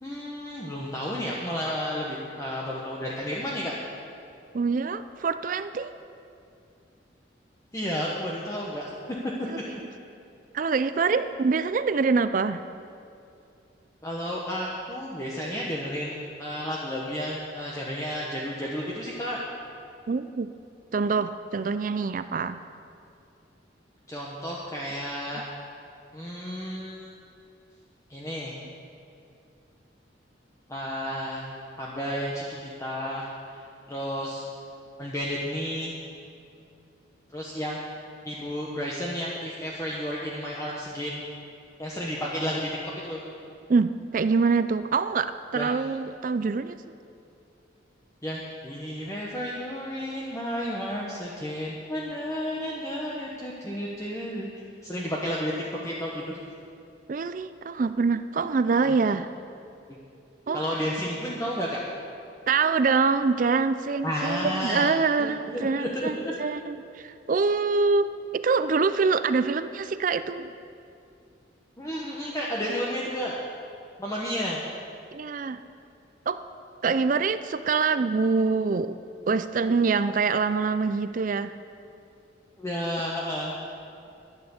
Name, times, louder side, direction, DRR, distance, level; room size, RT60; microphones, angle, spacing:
voice 1, 0.0-3.7 7.7-8.9 9.2-9.3 9.7-9.8 14.0-19.4 24.1-25.4 26.1-27.1 28.1-28.6 30.7-31.4 31.8-33.3 33.9-34.4 35.0-35.9 37.3-37.8 38.2-41.2 41.8-42.7 43.0-43.2 45.5-45.7 48.2-54.5 54.8-55.5 55.8-56.4 58.9-59.0 60.5-61.8 64.0-66.3 71.8-73.4 74.0-74.6 82.6-83.5, equal, 15° left, -4 dB, 1.2 m, -32 dB
voice 2, 4.5-6.0 9.5-9.6 10.5-12.6 20.1-20.5 20.9-22.6 43.7-46.8 57.1-59.3 60.5-60.6 62.5-70.5 75.1-75.6 76.3-76.4 76.8-79.0 79.3-81.5, right 4 dB, 45° right, 12 dB, 0.4 m, -25 dB
12.0 x 10.5 x 7.2 m, 2.5 s
head